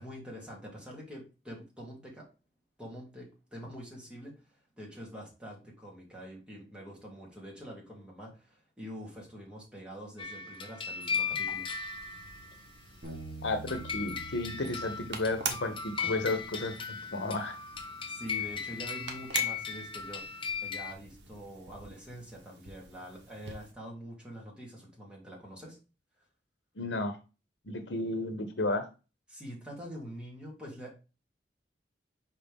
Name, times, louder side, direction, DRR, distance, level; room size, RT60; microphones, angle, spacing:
voice 1, 0.0-2.3 2.8-11.7 18.1-25.8 29.3-31.0, equal, 5° right, -4 dB, 2.5 m, -45 dB
sound 1, 10.2-12.6 13.7-20.9, left 6 dB, 30° left, 0.7 m, -37 dB
sound 2, 11.0-23.7, right 4 dB, 70° right, 1.3 m, -45 dB
Bass guitar, 13.0-19.3, right 3 dB, 55° right, 1.6 m, -49 dB
voice 2, 13.4-16.7 17.1-17.5 26.8-27.2 27.7-28.8, left 2 dB, 80° left, 8 dB, 1.0 m, -32 dB
5.7 x 4.6 x 3.5 m, 0.31 s
head